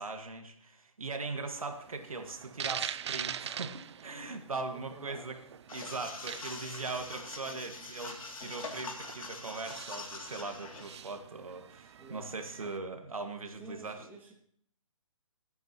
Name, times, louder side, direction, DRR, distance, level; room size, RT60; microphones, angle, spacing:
voice 1, 0.0-5.4 5.7-14.0, right 3 dB, 85° right, 5 dB, 1.8 m, -40 dB
sound 1, 1.6-12.8, right 9 dB, 55° right, 0.4 m, -44 dB
voice 2, 4.7-5.4 12.0-12.3 13.6-14.3, right 2 dB, 10° right, -3 dB, 1.9 m, -50 dB
sound 2, 5.7-11.0, left 3 dB, 80° left, 2.7 m, -44 dB
24.0 x 9.1 x 3.0 m, 0.62 s
hypercardioid pair, 145°, 17 cm